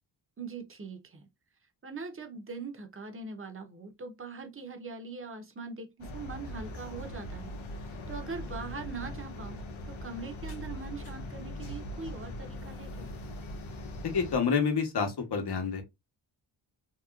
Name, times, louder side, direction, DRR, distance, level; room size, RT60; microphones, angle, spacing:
voice 1, 0.4-1.2 1.8-7.5 7.8-9.6 10.0-13.1, right 4 dB, 30° right, 0.7 m, -42 dB
sound 1, 6.0-14.4, left 1 dB, 85° left, 0.8 m, -41 dB
voice 2, 14.0-15.8, left 6 dB, 55° left, 1.0 m, -28 dB
3.0 x 2.8 x 2.3 m
wide cardioid pair, 125°, 46 cm